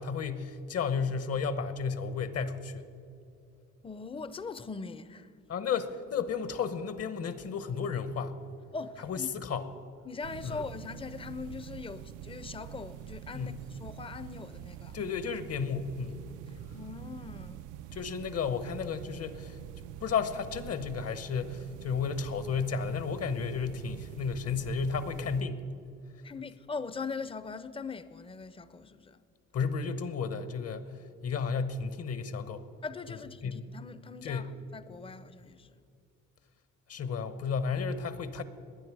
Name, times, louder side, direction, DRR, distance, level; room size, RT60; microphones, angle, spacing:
voice 1, 0.0-2.9 5.5-8.4 9.0-9.7 10.4-10.6 13.3-13.6 14.9-16.2 17.9-19.6 20.0-25.7 29.5-30.9 31.2-32.7 33.1-33.6 34.2-34.5 36.9-38.4, left 5 dB, 55° left, 1.0 m, -33 dB
voice 2, 3.8-5.3 8.7-9.3 10.0-15.0 16.5-17.8 26.2-29.2 32.8-35.7, left 4 dB, 20° left, 0.6 m, -41 dB
sound 1, 10.2-25.4, right 13 dB, 90° right, 0.5 m, -45 dB
20.5 x 9.5 x 4.8 m
cardioid pair, 90°, 30 cm